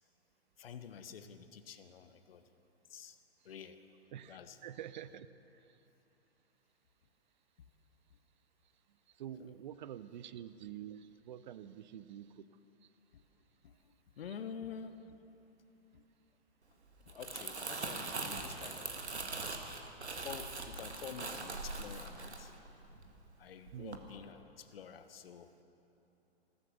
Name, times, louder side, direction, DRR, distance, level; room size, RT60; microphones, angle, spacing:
voice 1, 0.6-2.4 2.9-3.2 3.4-3.8 4.2-4.6 13.1-13.2 13.6-15.2 15.9-16.0 17.1-19.1 20.1-22.5 23.4-25.6, left 7 dB, 65° left, 10 dB, 1.2 m, -48 dB
voice 2, 4.1-5.3 9.1-12.5 23.7-24.0, right 10 dB, 45° right, 14 dB, 0.6 m, -47 dB
Crumpling crinkling, 16.9-23.3 23.7-24.0, right 3 dB, 90° right, 1.6 m, -42 dB
15.0 x 14.0 x 6.6 m, 2.9 s
figure-of-eight pair, 120°, 32 cm